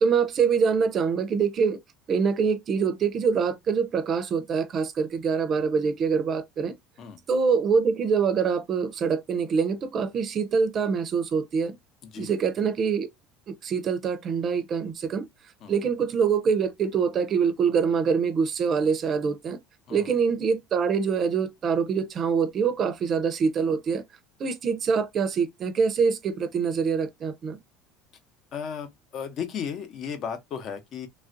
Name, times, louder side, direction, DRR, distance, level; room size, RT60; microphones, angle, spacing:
voice 1, 0.0-1.8 2.1-6.8 7.3-11.8 12.2-13.1 13.5-15.3 15.7-19.6 19.9-24.0 24.4-27.6, right 6 dB, 40° right, 0.5 m, -25 dB
voice 2, 28.5-31.1, left 7 dB, 50° left, 0.8 m, -35 dB
3.2 x 2.4 x 2.5 m
supercardioid pair, 120°, 0 cm